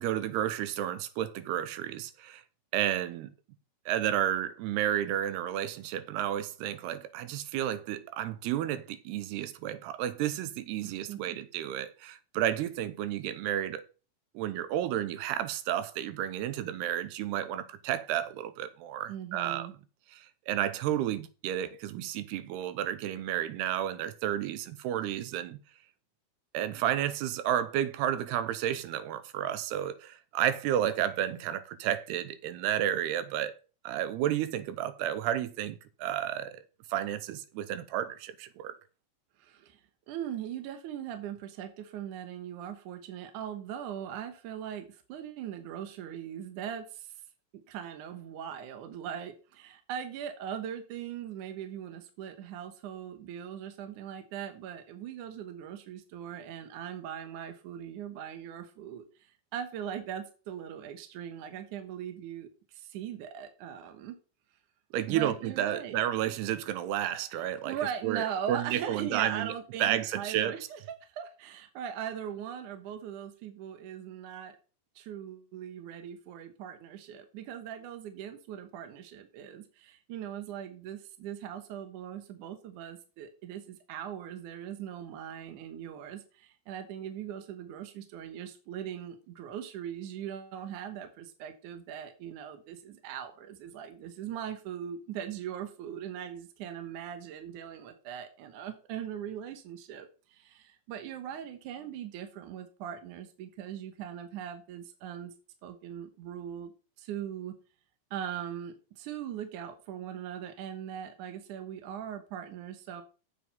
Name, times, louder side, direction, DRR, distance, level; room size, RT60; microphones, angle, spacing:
voice 1, 0.0-2.4 2.7-3.3 3.9-13.8 14.3-19.7 20.1-25.6 26.5-33.6 33.8-36.6 36.9-38.7 64.9-67.8 68.0-69.5 69.8-70.6, right 11 dB, 90° right, 2.9 m, -31 dB
voice 2, 10.8-11.4 19.1-19.7 39.4-39.8 40.1-47.1 47.7-64.2 65.1-66.0 67.6-74.6 75.0-105.3 105.6-106.7 107.0-107.6 108.1-113.0, right 9 dB, 65° right, 2.3 m, -40 dB
8.0 x 7.7 x 5.4 m
omnidirectional pair, 4.5 m